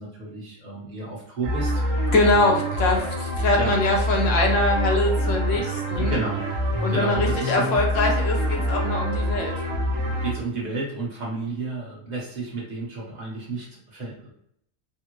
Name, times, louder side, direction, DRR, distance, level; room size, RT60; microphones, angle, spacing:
voice 1, 0.0-1.8 3.6-3.8 5.9-7.7 10.0-14.3, right 3 dB, 35° right, -4 dB, 1.1 m, -32 dB
sound 1, 1.4-10.3, equal, 80° right, 1.2 m, -25 dB
voice 2, 2.1-6.2 6.8-9.5, left 2 dB, 70° left, 0 dB, 1.0 m, -23 dB
3.5 x 2.0 x 2.9 m, 0.70 s
omnidirectional pair, 1.4 m